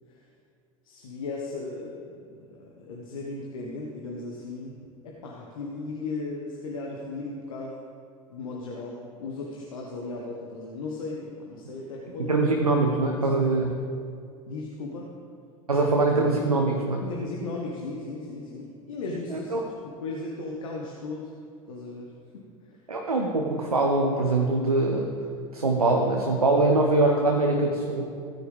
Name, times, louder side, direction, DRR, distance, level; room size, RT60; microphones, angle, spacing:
voice 1, 0.8-4.8 5.0-7.8 8.3-12.3 12.7-12.8 13.1-13.2 14.4-15.1 17.0-21.3 21.7-22.8, left 3 dB, 70° left, -2 dB, 1.4 m, -36 dB
voice 2, 12.2-13.8 15.7-17.0 19.3-19.6 22.9-25.1 25.5-28.0, right 2 dB, 85° right, 1 dB, 1.1 m, -23 dB
16.5 x 9.7 x 3.6 m, 2.3 s
figure-of-eight pair, 80°, 18 cm